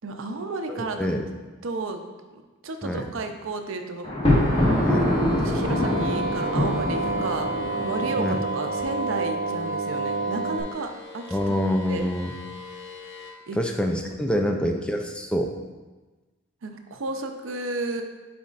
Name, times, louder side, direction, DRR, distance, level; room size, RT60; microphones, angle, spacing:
voice 1, 0.0-1.1 1.6-2.0 2.3-4.1 5.4-7.5 7.8-10.9 11.1-11.6 11.9-12.1 13.5-13.6 14.3-14.6 16.6-18.0, right 3 dB, 65° right, 5 dB, 0.6 m, -32 dB
voice 2, 0.7-1.3 2.8-3.1 4.8-5.1 8.2-8.4 11.3-12.4 13.5-15.5, equal, 5° left, 3 dB, 0.4 m, -26 dB
Thunder, 4.0-8.2, left 1 dB, 30° left, 1.5 m, -24 dB
sound 1, 4.2-13.3, left 2 dB, 55° left, 1.1 m, -42 dB
sound 2, 5.6-10.6, right 3 dB, 80° left, 1.5 m, -29 dB
9.3 x 4.2 x 2.4 m, 1.3 s
head